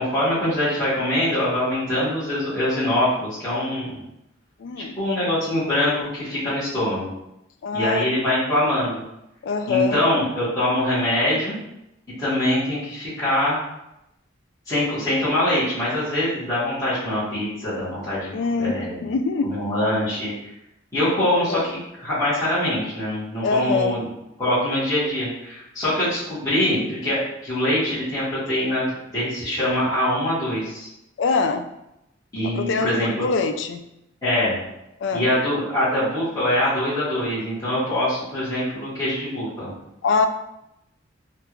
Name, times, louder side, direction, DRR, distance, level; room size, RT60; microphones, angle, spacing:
voice 1, 0.0-4.0 4.8-7.1 7.7-9.0 9.7-11.6 12.2-13.6 14.7-18.3 18.6-19.0 19.4-20.3 20.9-24.1 24.4-30.9 32.3-33.3 34.2-34.6 35.1-39.7, left 1 dB, 15° left, -13 dB, 1.4 m, -23 dB
voice 2, 4.6-5.0 7.6-8.1 9.4-10.0 18.3-19.5 21.3-21.7 23.4-24.0 31.2-31.7 32.4-33.8 35.0-35.3 40.0-40.3, left 4 dB, 65° left, 7 dB, 0.3 m, -24 dB
3.3 x 2.4 x 2.9 m, 0.85 s
head